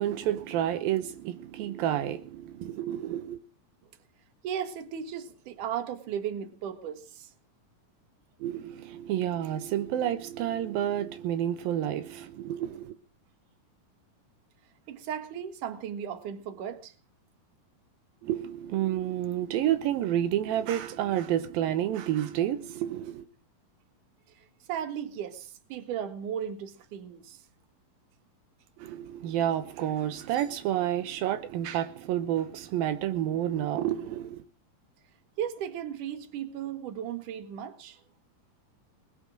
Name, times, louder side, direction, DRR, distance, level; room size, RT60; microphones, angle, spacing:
voice 1, 0.0-3.4 8.4-12.9 18.2-23.3 28.8-34.4, right 11 dB, 85° right, 2.8 m, -30 dB
voice 2, 4.4-7.3 14.9-16.9 24.7-27.4 35.4-38.0, right 9 dB, 65° right, 3.0 m, -36 dB
20.5 x 8.8 x 7.5 m
omnidirectional pair, 4.0 m